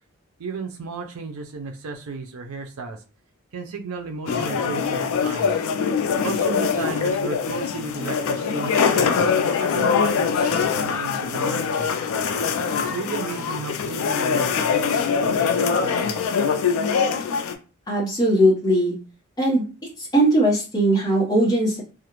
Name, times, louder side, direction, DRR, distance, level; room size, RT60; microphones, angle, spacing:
voice 1, 0.4-3.0 3.5-5.5 6.2-11.9 12.8-16.3, right 4 dB, 75° right, 5 dB, 0.4 m, -34 dB
sound 1, 4.3-17.5, left 6 dB, 70° left, 0.3 m, -23 dB
voice 2, 17.9-18.9 19.4-19.6 20.0-21.8, right 1 dB, 15° left, -5 dB, 0.7 m, -19 dB
2.4 x 2.0 x 2.9 m, 0.34 s
head